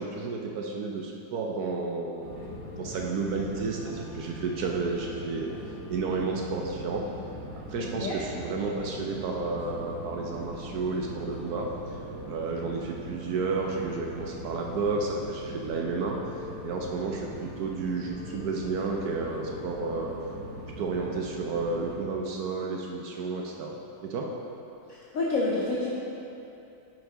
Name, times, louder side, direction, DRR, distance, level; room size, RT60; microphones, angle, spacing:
voice 1, 0.0-5.5 5.9-7.0 7.6-11.7 12.3-16.2 16.6-20.1 20.8-24.3, right 4 dB, 70° right, 0 dB, 0.9 m, -31 dB
sound 1, 2.2-22.0, left 1 dB, 45° right, 2.1 m, -41 dB
voice 2, 7.8-8.1 25.1-25.9, left 2 dB, 65° left, -5 dB, 0.9 m, -28 dB
6.2 x 5.2 x 4.9 m, 2.8 s
omnidirectional pair, 2.1 m